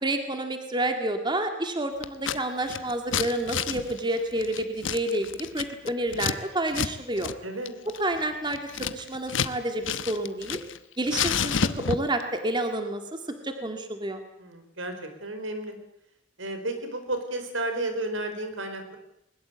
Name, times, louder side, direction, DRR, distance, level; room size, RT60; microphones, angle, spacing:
voice 1, 0.0-7.3 7.9-10.6 11.0-14.2, right 1 dB, 25° right, 6 dB, 1.9 m, -29 dB
Scissors, 2.0-2.4 2.6-6.4 6.7-6.9 7.2-7.3 7.7-9.5 9.8-10.8 11.1-12.2, left 6 dB, 75° left, 1.1 m, -30 dB
voice 2, 7.4-7.7 14.4-15.8 16.4-19.0, right 1 dB, 80° right, 7 dB, 4.4 m, -32 dB
21.5 x 20.5 x 8.1 m, 0.80 s
head